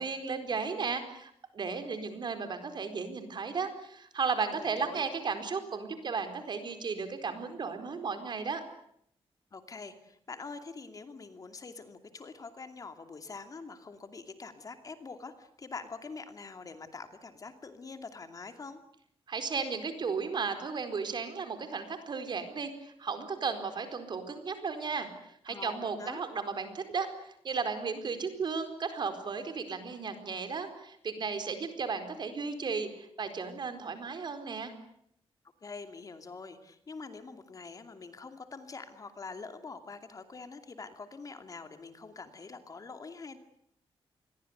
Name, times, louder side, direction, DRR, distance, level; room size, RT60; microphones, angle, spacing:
voice 1, 0.0-8.6 19.3-25.1 25.4-34.7, right 5 dB, 50° right, 8 dB, 4.4 m, -35 dB
voice 2, 4.5-5.1 9.5-18.8 25.5-26.2 35.6-43.4, left 4 dB, 35° left, 8 dB, 2.6 m, -45 dB
28.0 x 22.0 x 8.1 m, 0.71 s
wide cardioid pair, 150°, 10 cm